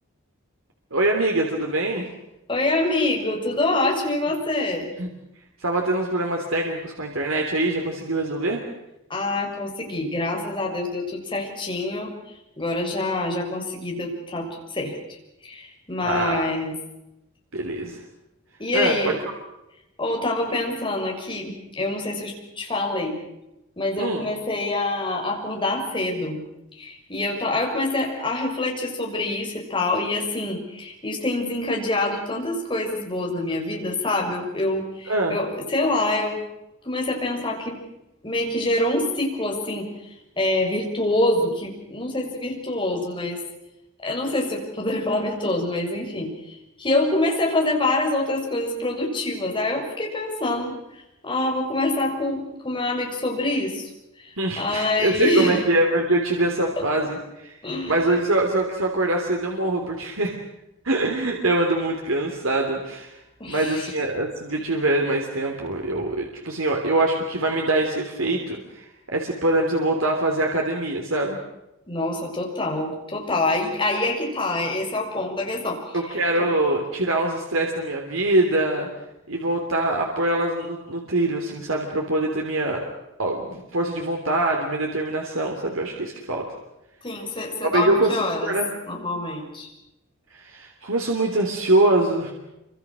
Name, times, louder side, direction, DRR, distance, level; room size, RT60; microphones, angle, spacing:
voice 1, 0.9-2.1 5.0-5.1 5.6-8.6 16.0-16.4 17.5-18.0 18.7-19.0 24.0-24.3 35.1-35.4 54.4-57.5 57.9-60.4 60.8-63.1 63.4-71.4 75.9-78.9 79.3-82.8 83.2-86.5 87.6-88.7 90.3-92.3, right 2 dB, 75° right, 1 dB, 3.3 m, -24 dB
voice 2, 2.5-4.9 9.1-12.1 12.6-15.0 15.4-16.7 18.6-19.2 20.0-23.2 23.8-26.4 26.8-36.4 36.8-37.8 38.2-39.9 40.4-43.4 44.0-50.8 51.2-53.9 54.2-55.6 56.8-56.9 57.6-57.9 63.4-63.9 64.6-64.7 71.9-76.5 87.0-88.5 88.9-89.7, left 2 dB, 25° left, 0 dB, 6.5 m, -26 dB
27.5 x 25.5 x 6.4 m, 0.92 s
head